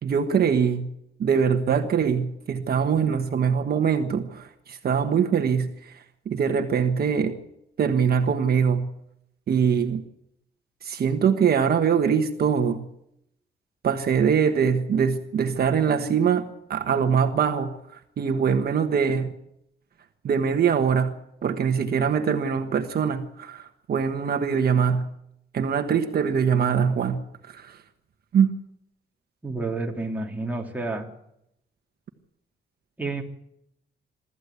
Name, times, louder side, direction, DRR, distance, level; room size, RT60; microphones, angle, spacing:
voice 1, 0.0-0.9 1.2-7.4 7.8-8.9 9.5-10.0 10.8-12.8 13.8-19.3 20.2-21.1 21.4-25.1 25.5-27.8 28.3-28.5, right 7 dB, 55° right, 6 dB, 1.4 m, -23 dB
voice 2, 29.4-31.1 33.0-33.2, right 3 dB, 10° right, 0 dB, 2.8 m, -29 dB
23.5 x 14.0 x 8.3 m, 0.80 s
cardioid pair, 145°, 19 cm